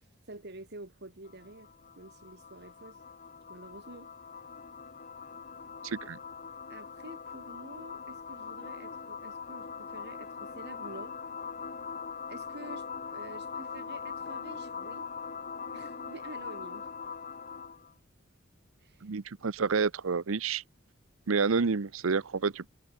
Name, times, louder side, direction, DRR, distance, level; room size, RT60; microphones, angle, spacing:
voice 1, 0.3-1.7 2.0-3.0 3.5-4.1 6.7-11.1 12.3-15.1 15.7-16.9 18.8-19.1, right 2 dB, 55° right, 3.5 m, -48 dB
sound 1, 1.2-17.9, left 5 dB, 45° left, 1.9 m, -42 dB
voice 2, 5.8-6.2 19.0-20.6 21.3-22.7, right 5 dB, 80° right, 0.7 m, -29 dB
head